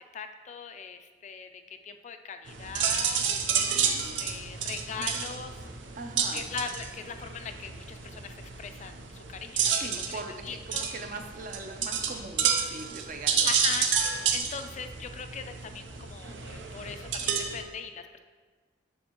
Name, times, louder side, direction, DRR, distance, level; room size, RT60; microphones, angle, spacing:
voice 1, 0.1-3.2 3.6-5.5 6.3-9.9 10.4-10.9 13.5-18.2, left 6 dB, 40° left, 8 dB, 0.3 m, -40 dB
sound 1, 2.5-17.6, right 6 dB, 85° right, 0.6 m, -30 dB
voice 2, 3.6-4.4 4.9-5.1 5.9-6.4 9.7-13.5, right 3 dB, 45° right, 5 dB, 0.5 m, -41 dB
7.1 x 6.3 x 2.9 m, 1.4 s
head